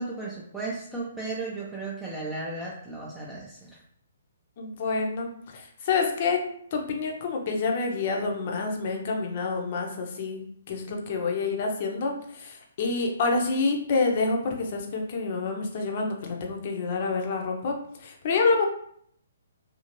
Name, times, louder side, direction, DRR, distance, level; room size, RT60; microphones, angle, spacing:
voice 1, 0.0-3.8 11.0-11.2, right 3 dB, 5° right, -5 dB, 0.4 m, -35 dB
voice 2, 4.6-6.4 6.7-18.7, left 4 dB, 45° left, 1 dB, 0.6 m, -28 dB
2.7 x 2.6 x 2.9 m, 0.66 s
figure-of-eight pair, 130°, 0 cm